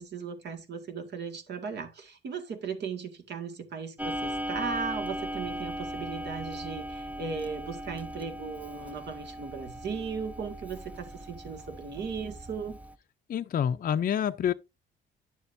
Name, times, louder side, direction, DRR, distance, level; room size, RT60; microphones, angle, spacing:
voice 1, 0.0-12.8, right 5 dB, 60° right, 1.9 m, -37 dB
Clock, 4.0-12.9, equal, 5° right, 0.5 m, -38 dB
voice 2, 13.3-14.5, left 9 dB, 45° left, 0.5 m, -27 dB
10.0 x 6.8 x 2.6 m
cardioid pair, 90°, 20 cm